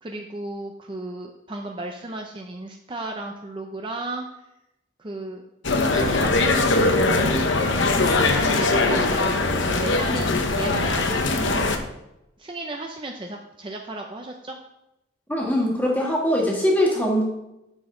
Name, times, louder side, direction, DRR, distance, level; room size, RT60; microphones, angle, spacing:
voice 1, 0.0-4.3 5.0-5.4 5.8-7.5 8.0-11.8 12.4-14.6, right 2 dB, 25° right, 2 dB, 0.5 m, -34 dB
sound 1, 5.6-11.8, left 3 dB, 75° left, 0.9 m, -21 dB
voice 2, 15.3-17.2, equal, 10° left, -2 dB, 1.6 m, -22 dB
9.8 x 6.2 x 3.8 m, 0.89 s
head